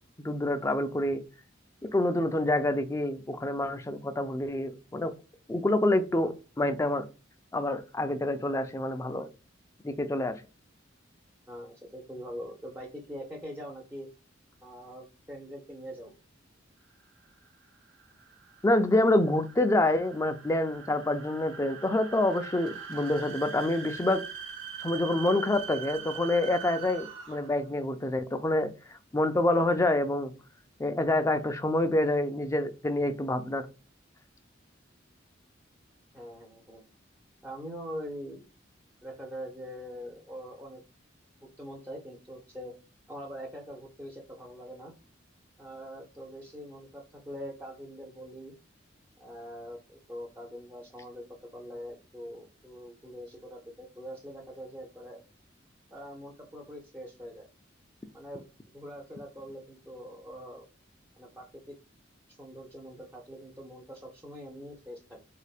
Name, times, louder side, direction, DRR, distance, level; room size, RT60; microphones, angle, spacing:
voice 1, 0.2-1.2 1.9-5.1 5.5-7.0 7.5-9.3 9.8-10.4 18.6-24.2 24.8-28.7 29.1-30.3 30.8-33.7, left 1 dB, 15° left, 0.3 m, -27 dB
voice 2, 11.5-14.1 14.6-16.1 36.1-36.8 37.4-38.5 39.0-40.8 41.4-42.7 43.1-44.9 45.6-48.5 49.2-55.2 55.9-57.5 58.1-60.6 61.2-61.8 62.3-65.2, equal, 10° right, 0.7 m, -43 dB
sound 1, 17.0-27.7, right 7 dB, 80° right, 0.9 m, -43 dB
3.6 x 3.4 x 2.3 m
head